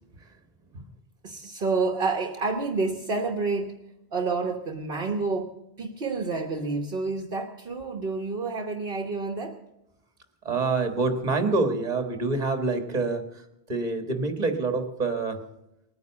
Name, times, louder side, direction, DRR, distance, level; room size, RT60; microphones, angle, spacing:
voice 1, 1.2-3.8 4.1-9.6, right 3 dB, 60° right, 5 dB, 1.3 m, -29 dB
voice 2, 10.4-15.4, right 3 dB, 40° right, 7 dB, 1.6 m, -26 dB
19.5 x 9.5 x 7.2 m, 0.89 s
omnidirectional pair, 1.1 m